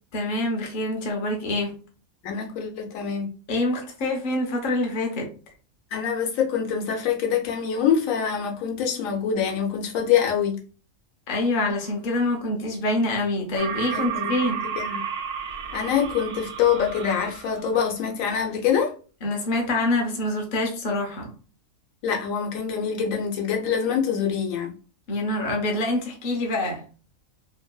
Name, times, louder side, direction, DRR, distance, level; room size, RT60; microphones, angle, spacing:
voice 1, 0.1-1.7 3.5-5.3 11.3-14.7 19.2-21.3 25.1-26.8, left 2 dB, 50° left, 0.7 m, -26 dB
voice 2, 2.2-3.3 5.9-10.6 13.9-14.3 14.8-15.0 15.7-18.9 22.0-24.7, left 7 dB, 75° left, 1.0 m, -25 dB
sound 1, 13.6-17.8, right 8 dB, 60° right, 0.7 m, -32 dB
2.9 x 2.6 x 2.2 m
omnidirectional pair, 1.4 m